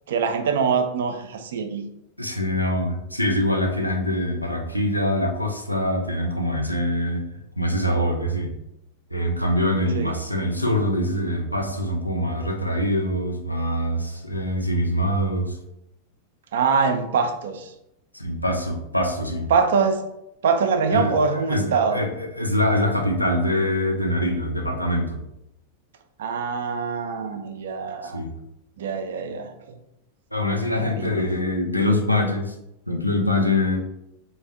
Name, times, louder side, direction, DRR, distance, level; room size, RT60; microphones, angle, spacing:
voice 1, 0.1-1.9 9.9-10.2 16.5-17.7 19.5-20.1 20.4-22.0 26.2-28.2 28.8-29.5 30.8-31.2, right 5 dB, 60° right, 7 dB, 0.4 m, -23 dB
voice 2, 2.2-7.2 7.6-8.5 9.1-15.6 18.1-19.5 20.9-25.2 28.0-28.3 30.3-32.5 32.9-33.8, left 1 dB, 90° left, 2 dB, 0.4 m, -24 dB
3.3 x 2.1 x 3.4 m, 0.85 s
figure-of-eight pair, 90°, 0 cm